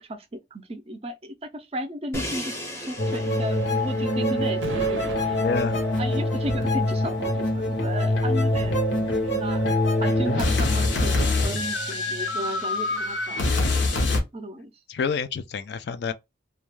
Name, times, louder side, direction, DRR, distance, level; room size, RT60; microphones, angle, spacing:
voice 1, 0.0-5.4 6.0-8.7 9.2-9.6 10.0-13.4 14.3-14.7, right 1 dB, 30° right, 0.4 m, -34 dB
Crash cymbal, 2.1-8.1, equal, 15° left, 0.6 m, -39 dB
sound 1, 3.0-14.2, left 1 dB, 80° left, 0.8 m, -24 dB
sound 2, 4.6-11.4, right 3 dB, 85° right, 0.5 m, -41 dB
voice 2, 5.4-5.8 14.9-16.1, left 5 dB, 60° left, 0.3 m, -28 dB
2.3 x 2.1 x 3.0 m
head